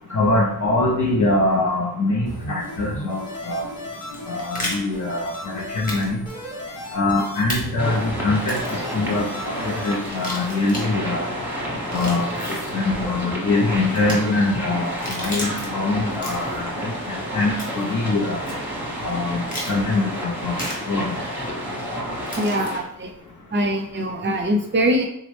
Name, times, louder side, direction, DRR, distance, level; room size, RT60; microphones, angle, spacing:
voice 1, 0.1-3.2 3.5-3.6 4.3-6.1 6.9-8.6 8.9-11.3 11.9-12.3 12.7-16.9 17.3-18.4 19.0-20.5 20.9-21.2, left 2 dB, 60° left, -3 dB, 0.5 m, -23 dB
sound 1, 2.2-10.1, equal, 75° left, 1.4 m, -35 dB
sound 2, 4.0-4.8 5.9-6.0 6.3-6.4 7.5-7.6 8.4-8.8 10.0-10.8 11.8-12.7 13.9-14.2 14.9-15.7 16.1-16.6 17.6-17.9 18.5-18.6 19.5-19.7 20.6-20.7 22.3-22.7, equal, 25° left, 0.9 m, -32 dB
sound 3, 7.8-22.8, equal, 5° right, 0.8 m, -30 dB
voice 2, 22.4-23.1 23.5-25.0, equal, 35° right, 3 dB, 0.5 m, -22 dB
3.5 x 2.0 x 3.1 m, 0.73 s
wide cardioid pair, 150°, 35 cm